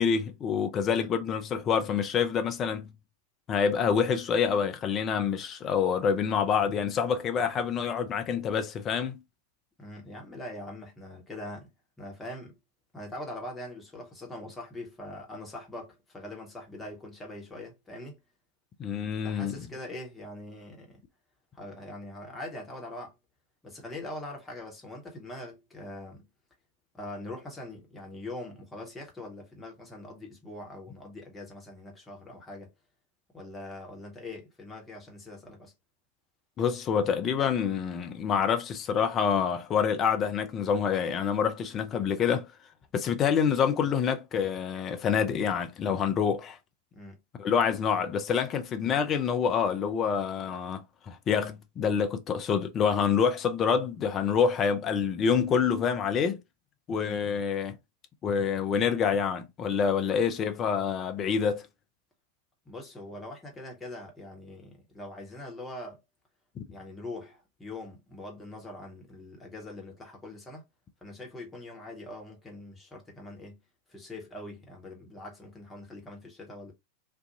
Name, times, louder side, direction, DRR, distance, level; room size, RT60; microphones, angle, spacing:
voice 1, 0.0-2.9 3.5-9.2 18.8-19.5 36.6-42.5 42.9-46.6 47.4-56.4 56.9-57.8 58.2-61.6 66.6-66.7, left 7 dB, 30° left, 0.5 m, -27 dB
voice 2, 9.8-11.7 12.0-12.6 12.9-18.2 19.2-21.0 21.5-23.1 23.6-26.3 26.9-32.7 33.3-35.7 46.9-47.2 57.0-57.4 62.7-66.0 66.7-70.6 71.0-73.6 73.9-76.7, left 1 dB, 10° left, 1.0 m, -42 dB
2.5 x 2.3 x 2.7 m
figure-of-eight pair, 90°, 0 cm